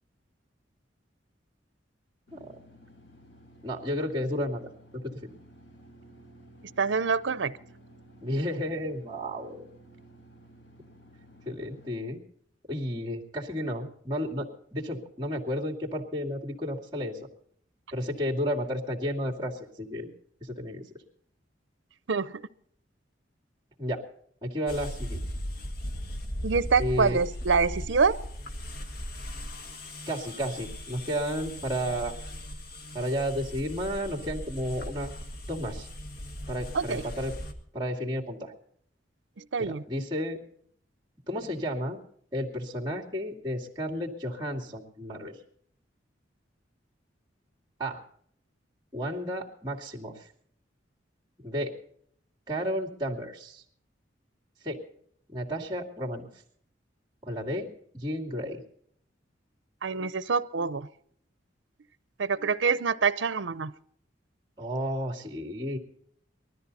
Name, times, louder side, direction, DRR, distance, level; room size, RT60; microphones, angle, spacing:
sound 1, 2.3-11.9, right 1 dB, 70° left, 1.7 m, -54 dB
voice 1, 3.6-4.6 5.0-5.3 8.2-9.7 11.5-12.2 12.7-17.2 17.9-20.1 20.4-20.8 23.8-24.0 24.4-25.2 26.8-27.2 30.1-32.2 32.9-35.1 35.5-35.9 36.5-37.3 37.7-38.5 39.6-40.4 41.3-42.0 42.3-45.3 47.8-48.0 48.9-50.3 51.4-51.7 52.5-53.6 54.6-54.8 55.3-56.3 57.2-57.7 57.9-58.6 64.6-65.8, equal, 25° right, -2 dB, 2.5 m, -32 dB
voice 2, 6.8-7.5 22.1-22.4 26.4-28.2 36.7-37.0 39.4-39.8 59.8-60.9 62.2-63.7, right 5 dB, 75° right, 17 dB, 0.6 m, -26 dB
sound 2, 24.7-37.5, equal, 55° left, 1.6 m, -38 dB
20.5 x 13.5 x 4.1 m, 0.63 s
head